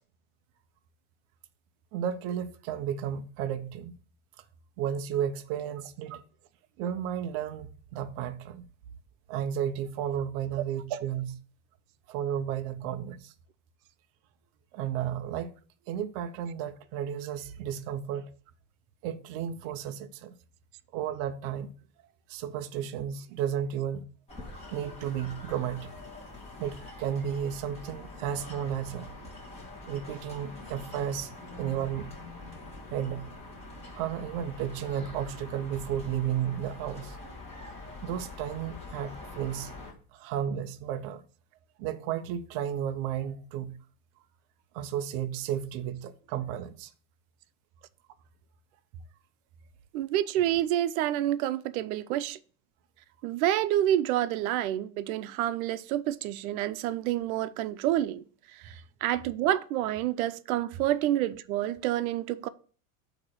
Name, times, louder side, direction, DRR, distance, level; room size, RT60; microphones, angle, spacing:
voice 1, 1.9-4.0 4.8-6.2 6.8-8.6 9.3-11.4 12.1-13.3 14.7-15.5 15.9-18.3 19.0-20.4 20.9-21.7 22.3-24.1 24.7-25.9 26.2-26.3 26.6-29.1 29.9-32.1 32.9-33.3 33.9-37.2 38.0-39.7 40.1-41.2 41.8-43.8 44.7-46.9, right 9 dB, 35° right, 0.4 m, -33 dB
sound 1, 24.3-39.9, left 2 dB, 15° left, 1.6 m, -45 dB
voice 2, 49.9-52.4 53.2-58.2 58.5-62.5, right 13 dB, 75° right, 0.7 m, -28 dB
8.3 x 2.9 x 6.2 m
supercardioid pair, 165°, 43 cm